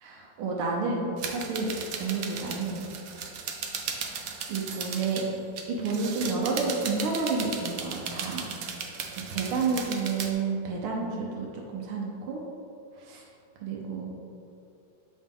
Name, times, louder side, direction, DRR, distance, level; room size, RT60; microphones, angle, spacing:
voice 1, 0.0-2.9 4.0-5.2 5.7-8.5 9.3-12.4 13.0-13.2 13.6-14.1, right 4 dB, 90° right, -1 dB, 1.7 m, -30 dB
sound 1, 1.2-5.2 5.6-10.3, right 6 dB, 75° right, 0.8 m, -36 dB
7.8 x 5.2 x 3.6 m, 2.6 s
omnidirectional pair, 2.3 m